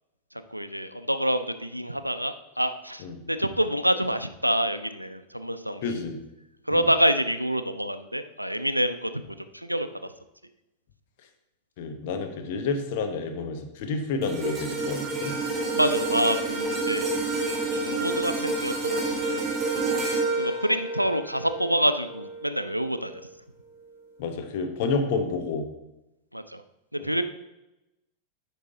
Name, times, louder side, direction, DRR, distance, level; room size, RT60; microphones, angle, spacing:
voice 1, 0.5-6.0 6.7-9.2 9.5-10.1 15.7-17.4 17.7-19.5 20.3-23.2 26.3-26.6 26.9-27.2, equal, 90° right, 11 dB, 0.4 m, -27 dB
voice 2, 5.8-6.2 6.7-6.9 11.8-15.3 24.2-25.6 27.0-27.1, left 4 dB, 50° left, 5 dB, 1.0 m, -29 dB
sound 1, 14.2-22.6 23.0-23.2, right 3 dB, 15° right, 3.0 m, -29 dB
8.5 x 5.4 x 3.8 m, 0.94 s
figure-of-eight pair, 90°, 0 cm